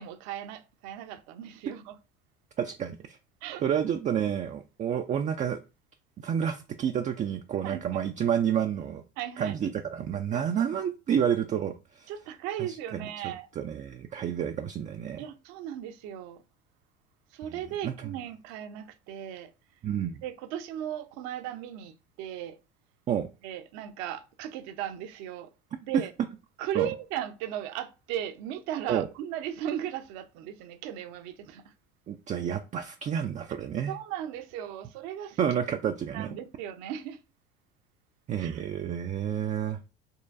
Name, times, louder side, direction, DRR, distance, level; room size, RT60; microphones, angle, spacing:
voice 1, 0.0-2.0 3.4-3.6 7.6-8.0 9.2-9.6 10.3-10.4 12.1-13.5 15.2-16.4 17.3-19.5 20.2-22.6 23.4-25.5 25.8-26.1 26.6-31.7 33.9-35.4 36.1-37.2 38.4-38.6 39.0-39.1, right 10 dB, 55° right, 0.7 m, -36 dB
voice 2, 2.6-3.2 3.6-5.6 6.2-9.0 9.4-12.1 12.6-15.2 17.8-18.1 19.8-20.2 23.1-23.3 26.7-26.9 28.9-29.1 32.1-33.9 35.4-36.3 38.3-39.8, right 8 dB, 25° right, 0.4 m, -30 dB
5.4 x 3.1 x 2.5 m
hypercardioid pair, 70°, 32 cm